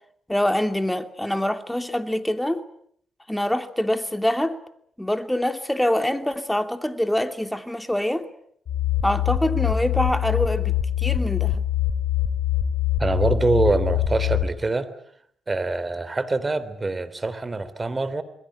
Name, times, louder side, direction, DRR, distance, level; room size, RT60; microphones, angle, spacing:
voice 1, 0.3-2.7 3.3-4.6 5.0-8.3 9.0-11.6, left 1 dB, 5° left, 2.8 m, -25 dB
sound 1, 8.7-14.4, left 11 dB, 65° left, 3.7 m, -24 dB
voice 2, 13.0-14.9 15.5-18.2, right 3 dB, 30° right, 3.4 m, -24 dB
27.5 x 22.0 x 8.8 m
hypercardioid pair, 45°, 0 cm